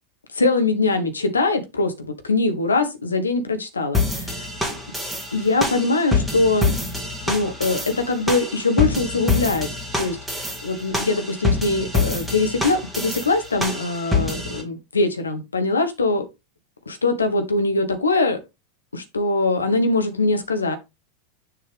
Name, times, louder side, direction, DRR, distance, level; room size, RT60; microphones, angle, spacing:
voice 1, 0.3-4.5 5.3-6.7 7.3-9.7 10.0-16.3 16.9-18.4 18.9-20.8, left 3 dB, 80° left, 1.3 m, -22 dB
sound 1, 3.9-14.6, left 3 dB, ahead, 2.0 m, -26 dB
6.9 x 5.5 x 3.6 m
figure-of-eight pair, 85°, 0 cm